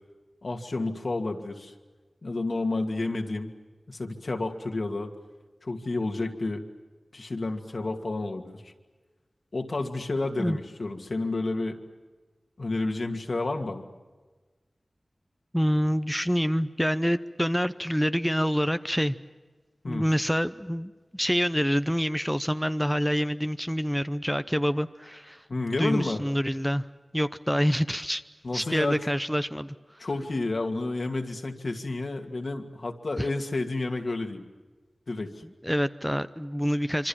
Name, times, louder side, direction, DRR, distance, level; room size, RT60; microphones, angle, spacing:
voice 1, 0.4-1.7 2.2-3.5 3.9-5.1 5.6-6.6 7.1-8.7 9.5-11.8 12.6-13.9 19.8-20.1 25.5-26.2 28.4-29.1 30.0-34.4 35.1-35.4, left 2 dB, 65° left, 4 dB, 2.5 m, -30 dB
voice 2, 15.5-19.2 19.9-25.4 25.8-26.9 27.1-28.2 28.5-29.7 33.2-33.3 35.6-37.1, equal, ahead, 11 dB, 0.7 m, -26 dB
26.0 x 25.5 x 7.4 m, 1.3 s
wide cardioid pair, 75°, 0 cm